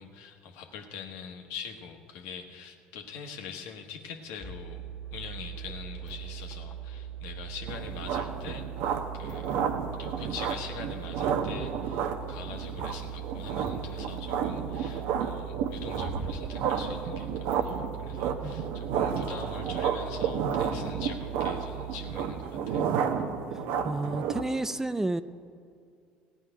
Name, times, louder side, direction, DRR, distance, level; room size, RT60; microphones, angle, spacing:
voice 1, 0.0-4.8 5.1-9.6 10.0-22.9, left 6 dB, 70° left, 4 dB, 1.3 m, -43 dB
sound 1, 4.4-22.2, right 9 dB, 30° left, 1.5 m, -40 dB
sound 2, 7.7-24.4, right 7 dB, 65° right, 0.9 m, -31 dB
voice 2, 23.8-25.2, right 2 dB, 10° right, 13 dB, 0.4 m, -30 dB
15.5 x 5.4 x 9.9 m, 2.4 s
hypercardioid pair, 70°, 4 cm